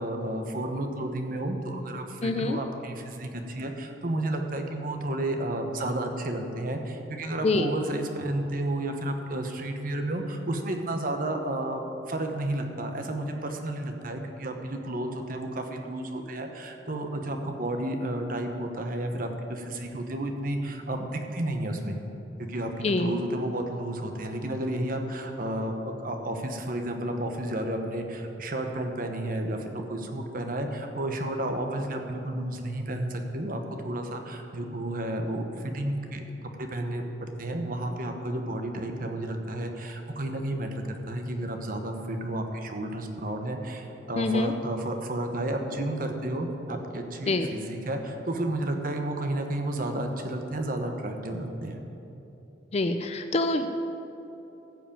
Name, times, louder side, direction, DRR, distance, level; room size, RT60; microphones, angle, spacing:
voice 1, 0.0-11.8 12.1-22.0 22.5-36.2 36.6-40.7 41.1-51.8, right 1 dB, 50° right, 4 dB, 1.1 m, -32 dB
voice 2, 2.2-2.6 7.4-7.7 22.8-23.1 44.1-44.5 47.3-47.5 52.7-53.7, left 2 dB, 35° left, 7 dB, 0.5 m, -25 dB
15.0 x 5.1 x 8.7 m, 2.9 s
head